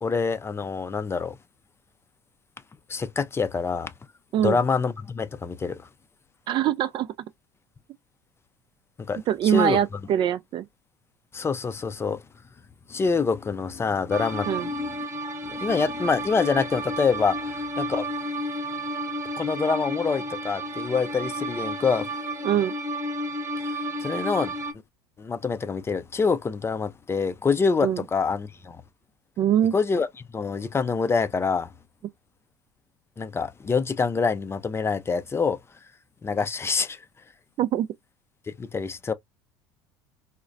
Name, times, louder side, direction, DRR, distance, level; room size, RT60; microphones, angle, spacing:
voice 1, 0.0-1.4 2.9-3.9 4.4-5.8 9.0-9.8 11.3-12.2 12.9-14.9 15.5-18.1 19.4-22.1 24.0-24.5 25.2-28.8 29.7-30.1 30.3-31.7 33.2-35.6 36.2-37.0 38.5-39.1, left 5 dB, 20° left, 0.4 m, -26 dB
voice 2, 6.5-7.1 9.3-10.7 14.5-14.7 22.4-22.7 27.8-28.0 29.4-29.7 37.6-37.9, right 10 dB, 45° right, 0.4 m, -23 dB
sound 1, 14.1-24.7, equal, 25° right, 0.8 m, -32 dB
3.8 x 2.1 x 2.5 m
hypercardioid pair, 75°, 11 cm